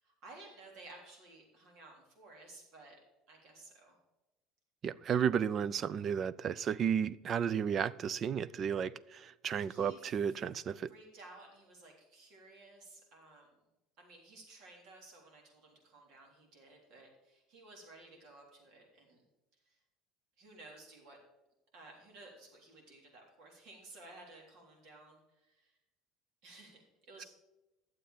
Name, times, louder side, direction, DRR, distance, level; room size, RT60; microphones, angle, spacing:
voice 1, 0.0-3.0 3.3-4.0 9.7-10.1 10.9-13.6 14.0-19.3 19.7-19.8 20.4-21.2 21.7-25.8 26.4-27.3, right 2 dB, 55° right, 3.5 m, -55 dB
voice 2, 4.8-10.9, right 7 dB, 30° right, 0.3 m, -33 dB
12.0 x 7.6 x 5.1 m
cardioid pair, 155°, 0 cm